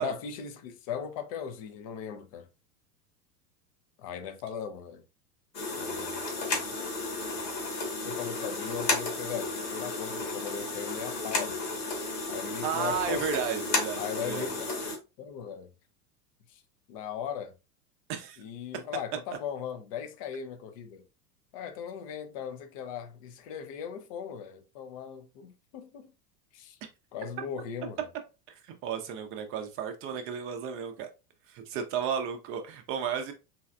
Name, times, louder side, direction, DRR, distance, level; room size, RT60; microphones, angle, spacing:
voice 1, 0.0-2.5 4.0-5.0 5.7-6.2 6.5-6.6 7.3-7.4 8.0-11.6 12.3-13.3 14.0-15.7 16.5-16.6 16.9-17.5 18.4-21.0 21.5-26.1 26.5-26.8 27.1-28.1, left 8 dB, 25° left, 0.3 m, -38 dB
sound 1, 5.5-15.0, left 3 dB, 70° left, 1.5 m, -33 dB
voice 2, 12.6-14.5 18.1-18.4 28.8-31.1 31.5-33.3, right 7 dB, 25° right, 0.6 m, -33 dB
4.0 x 3.1 x 2.3 m
figure-of-eight pair, 90°, 49 cm